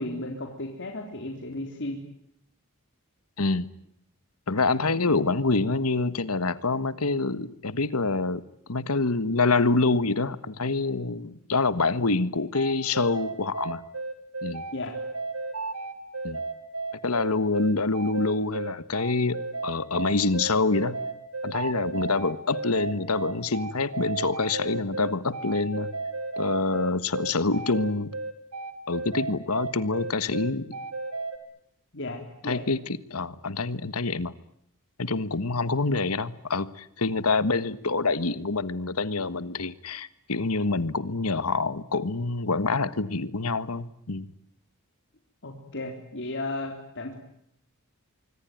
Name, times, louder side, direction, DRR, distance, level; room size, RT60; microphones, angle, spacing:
voice 1, 0.0-2.0 14.7-14.9 31.9-32.7 45.4-47.2, left 2 dB, 55° left, 3 dB, 3.8 m, -34 dB
voice 2, 3.4-3.7 4.5-8.4 8.7-13.8 14.4-14.6 16.2-16.4 17.0-21.0 21.4-25.9 26.4-28.1 28.9-30.7 32.4-34.3 35.0-44.3, left 3 dB, 90° left, 15 dB, 1.5 m, -26 dB
sound 1, 12.5-31.4, right 3 dB, 80° right, 4.3 m, -33 dB
25.5 x 24.5 x 9.4 m, 0.71 s
head